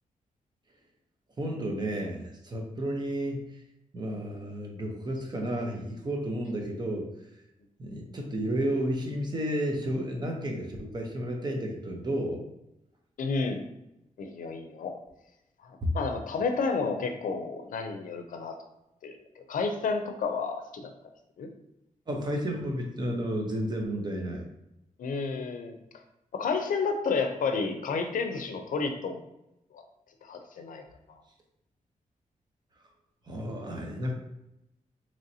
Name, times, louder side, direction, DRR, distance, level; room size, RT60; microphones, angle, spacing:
voice 1, 1.4-3.6 3.9-7.1 7.8-12.4 15.8-15.9 22.1-24.4 33.3-34.1, equal, 30° right, 1 dB, 0.7 m, -32 dB
voice 2, 13.2-13.6 14.2-14.9 15.6-18.5 19.0-20.9 21.4-21.5 25.0-25.8 26.3-29.2 29.7-29.8 30.2-30.8 31.1-31.2, left 4 dB, 75° left, 5 dB, 0.5 m, -31 dB
4.0 x 3.1 x 2.7 m, 0.88 s
wide cardioid pair, 150°, 14 cm